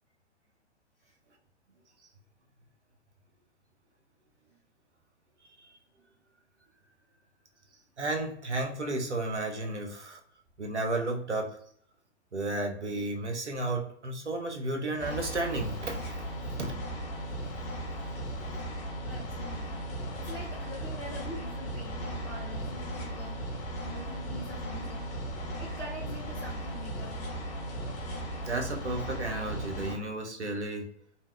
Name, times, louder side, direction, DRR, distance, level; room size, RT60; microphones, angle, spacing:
voice 1, 8.0-10.2 10.6-11.6 12.3-16.3 16.6-16.7 28.4-30.9, right 2 dB, 90° right, 2 dB, 0.7 m, -33 dB
sound 1, 15.0-30.0, right 1 dB, 30° left, 0.7 m, -37 dB
voice 2, 19.1-23.5 23.8-25.0 25.6-27.2, left 1 dB, 15° right, -8 dB, 0.3 m, -44 dB
2.7 x 2.1 x 2.3 m, 0.62 s
figure-of-eight pair, 105°, 34 cm